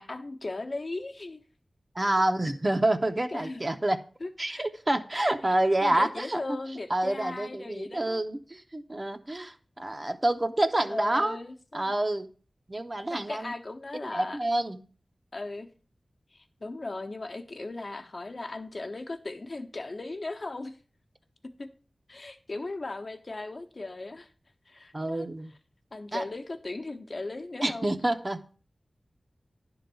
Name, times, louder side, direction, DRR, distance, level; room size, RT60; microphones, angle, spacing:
voice 1, 0.0-1.4 3.3-3.6 4.2-4.7 5.4-8.2 10.9-11.9 13.1-14.4 15.3-15.7 16.3-20.8 21.6-21.7 22.1-24.3 24.7-25.3 25.9-28.0, left 2 dB, 50° left, 6 dB, 1.0 m, -37 dB
voice 2, 1.9-4.0 4.4-6.6 6.9-11.4 11.7-12.3 12.7-13.5 14.1-14.8 24.9-25.5 26.1-26.2 27.6-28.6, right 1 dB, 30° right, 5 dB, 0.7 m, -28 dB
11.0 x 3.9 x 6.9 m, 0.39 s
wide cardioid pair, 85°, 0 cm